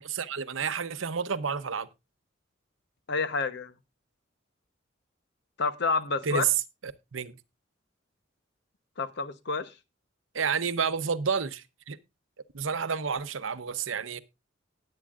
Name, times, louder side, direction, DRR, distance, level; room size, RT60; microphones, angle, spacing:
voice 1, 0.1-1.9 6.2-6.5 6.8-7.4 10.3-12.0 12.5-14.2, right 6 dB, 80° right, 0.8 m, -30 dB
voice 2, 3.1-3.7 5.6-6.5 9.0-9.8, left 4 dB, 60° left, 0.9 m, -29 dB
19.0 x 8.3 x 2.4 m
head